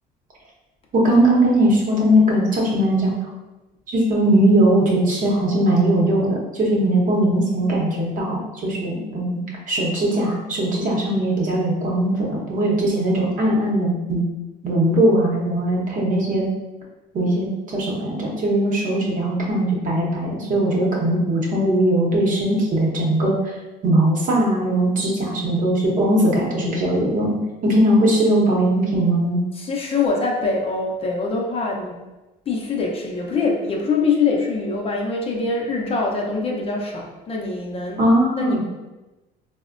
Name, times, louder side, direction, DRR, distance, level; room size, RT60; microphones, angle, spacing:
voice 1, 0.9-3.1 3.9-14.2 14.6-16.5 17.1-23.3 23.8-27.4 27.6-29.4 38.0-38.6, right 1 dB, 50° right, -2 dB, 0.8 m, -19 dB
voice 2, 29.5-32.0 32.5-38.0 38.4-38.6, left 4 dB, 35° left, -1 dB, 0.5 m, -24 dB
4.0 x 2.1 x 2.4 m, 1.1 s
cardioid pair, 120°, 17 cm